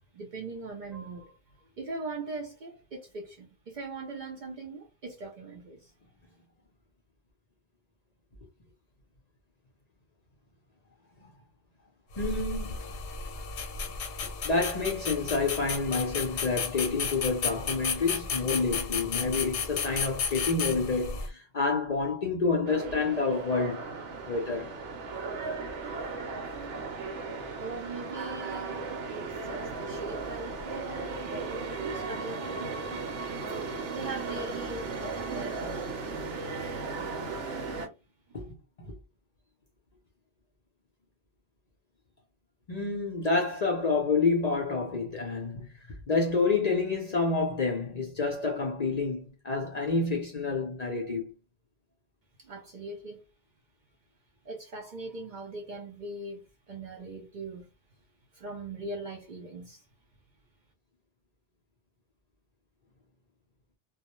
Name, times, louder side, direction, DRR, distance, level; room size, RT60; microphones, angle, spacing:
voice 1, 0.1-1.3 1.6-5.9 27.6-33.1 33.6-36.0 38.3-38.4 52.4-53.2 54.4-57.7 58.3-59.9, right 3 dB, 55° right, 0.5 m, -41 dB
sound 1, 12.1-21.3, left 5 dB, 85° left, 0.9 m, -33 dB
voice 2, 12.2-13.0 14.2-23.9 24.3-24.8 38.3-38.9 42.7-45.7 46.1-51.3, left 4 dB, 50° left, 0.5 m, -29 dB
sound 2, 22.7-37.9, right 4 dB, 85° right, 1.0 m, -36 dB
2.2 x 2.0 x 2.9 m
omnidirectional pair, 1.2 m